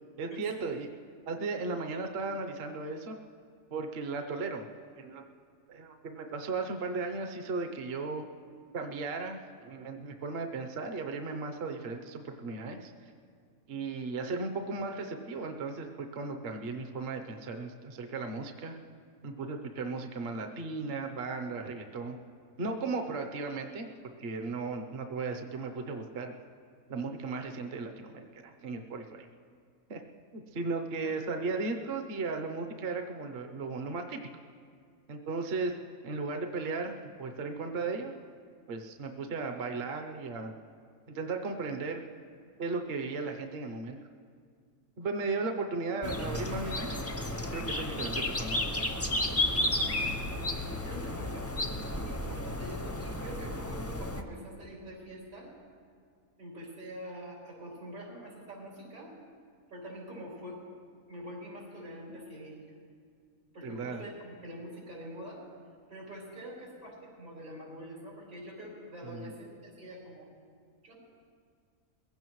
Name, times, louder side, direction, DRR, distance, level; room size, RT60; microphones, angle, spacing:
voice 1, 0.2-0.9 1.3-3.2 3.7-4.6 5.0-5.2 5.7-8.2 8.7-12.9 13.7-18.8 19.2-22.2 22.6-23.9 24.2-26.3 26.9-29.3 29.9-30.0 30.3-34.2 35.1-35.7 36.0-38.2 38.7-40.5 41.1-42.0 42.6-44.0 45.0-47.0 47.5-48.7 63.6-64.0 69.0-69.3, right 3 dB, 50° right, 4 dB, 0.9 m, -36 dB
sound 1, 46.0-54.2, left 1 dB, 20° left, 0.4 m, -33 dB
voice 2, 50.8-55.5 56.4-59.1 59.7-60.6 61.1-62.7 63.5-65.4 65.9-70.3 70.8-71.0, equal, 85° right, -5 dB, 5.0 m, -45 dB
22.0 x 16.0 x 3.1 m, 2.1 s
omnidirectional pair, 1.5 m